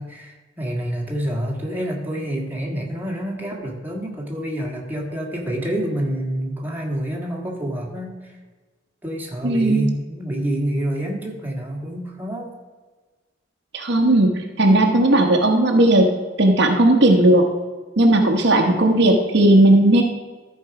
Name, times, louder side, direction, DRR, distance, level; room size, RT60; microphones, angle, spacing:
voice 1, 0.0-8.4 9.0-12.5, equal, 10° right, -2 dB, 1.7 m, -27 dB
voice 2, 9.4-9.9 13.7-16.1 16.4-17.4 18.0-20.0, right 1 dB, 60° right, 2 dB, 1.1 m, -16 dB
14.0 x 4.7 x 4.8 m, 1.3 s
head